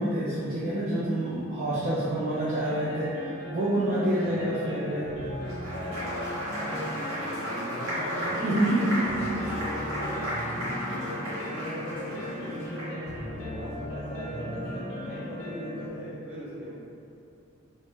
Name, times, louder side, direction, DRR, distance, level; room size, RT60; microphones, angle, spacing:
voice 1, 0.0-5.1 8.2-8.8, right 1 dB, 30° right, -11 dB, 0.3 m, -28 dB
sound 1, 2.6-15.9, equal, 65° left, 0.6 m, -37 dB
voice 2, 4.2-5.3 5.7-6.3 6.5-16.7, equal, 10° right, -12 dB, 0.8 m, -39 dB
Applause, 5.3-13.1, equal, 70° right, 0.8 m, -35 dB
2.0 x 2.0 x 3.2 m, 2.5 s
head